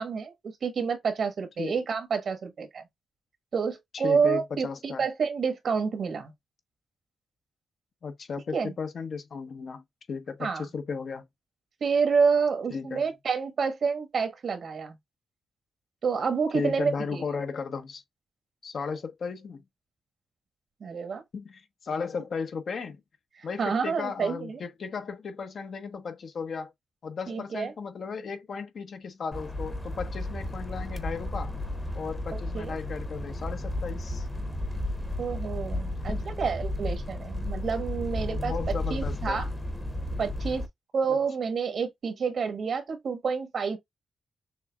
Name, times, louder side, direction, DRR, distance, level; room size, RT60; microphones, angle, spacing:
voice 1, 0.0-2.8 3.5-6.3 8.5-8.7 10.4-10.6 11.8-15.0 16.0-17.2 20.8-21.2 23.4-24.6 27.3-27.7 32.3-32.8 35.2-38.5 38.9-39.5 40.2-40.6 40.9-43.8, right 5 dB, 60° right, 1.3 m, -28 dB
voice 2, 3.9-5.0 8.0-9.8 10.1-11.2 12.7-13.0 16.5-18.0 18.6-19.6 21.3-23.0 23.4-26.7 27.0-31.5 31.9-34.3 36.1-36.4 38.3-39.4, left 5 dB, 55° left, 1.0 m, -35 dB
sound 1, 29.3-40.7, left 1 dB, 10° left, 1.0 m, -33 dB
6.4 x 2.3 x 2.3 m
cardioid pair, 100°, 0 cm